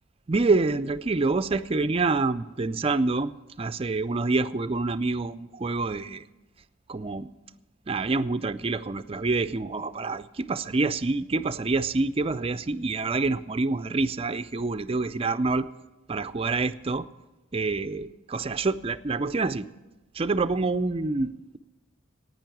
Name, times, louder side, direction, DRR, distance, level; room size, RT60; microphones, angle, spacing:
voice 1, 0.3-3.3 3.6-6.2 6.9-7.3 7.9-15.7 16.1-17.1 17.5-19.7 20.1-21.6, right 3 dB, 30° right, 12 dB, 0.4 m, -27 dB
10.5 x 9.2 x 9.1 m, 1.1 s
head